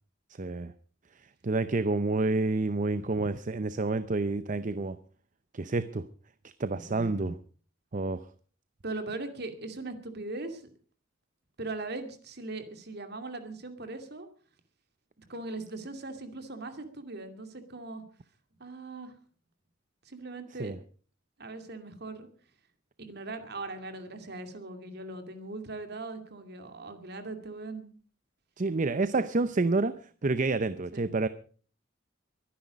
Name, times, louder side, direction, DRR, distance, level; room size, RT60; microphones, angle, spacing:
voice 1, 0.4-0.7 1.4-5.0 5.5-6.1 6.4-7.4 7.9-8.2 20.6-20.8 28.6-31.3, right 3 dB, 40° right, 0.6 m, -29 dB
voice 2, 6.9-7.3 8.8-10.6 11.6-14.3 15.2-18.0 18.6-19.1 20.1-20.7 21.4-22.3 23.0-28.0 30.9-31.1, right 2 dB, 55° right, 2.5 m, -40 dB
23.0 x 10.0 x 5.2 m
head